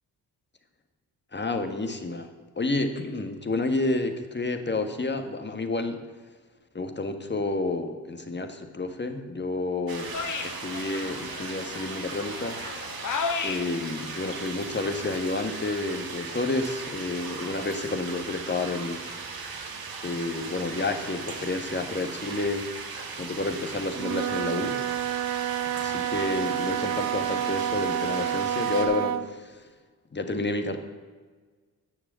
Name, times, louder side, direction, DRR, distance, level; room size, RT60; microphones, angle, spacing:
voice 1, 1.3-2.3 2.6-6.0 6.7-10.1 10.4-12.6 13.4-19.0 20.0-22.6 23.2-24.8 25.8-29.6 30.1-30.8, left 2 dB, 25° left, 7 dB, 1.4 m, -30 dB
sound 1, 9.9-28.9, right 4 dB, 65° right, 1.5 m, -38 dB
sound 2, 10.1-15.4, left 5 dB, 50° left, 1.0 m, -36 dB
Wind instrument woodwind instrument, 23.9-29.3, right 10 dB, 45° right, 0.6 m, -29 dB
9.6 x 6.9 x 7.4 m, 1.4 s
supercardioid pair, 55°, 39 cm